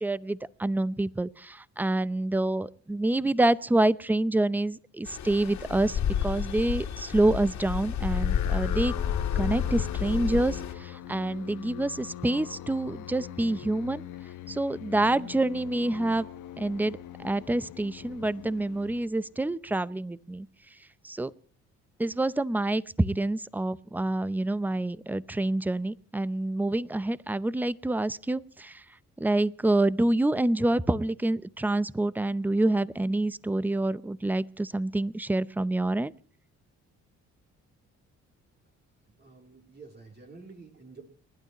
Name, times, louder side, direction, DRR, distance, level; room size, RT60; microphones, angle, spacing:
voice 1, 0.0-8.9 9.4-14.0 14.5-16.3 16.6-20.5 21.0-21.3 22.0-28.8 29.2-36.1, right 2 dB, 5° right, 17 dB, 0.6 m, -27 dB
Stream, 5.1-10.7, left 8 dB, 70° left, 2.4 m, -30 dB
sound 1, 8.0-19.5, left 12 dB, 90° left, 1.2 m, -42 dB
voice 2, 39.2-41.0, right 4 dB, 35° right, 1 dB, 3.1 m, -49 dB
30.0 x 12.0 x 3.0 m, 0.43 s
cardioid pair, 90°, 30 cm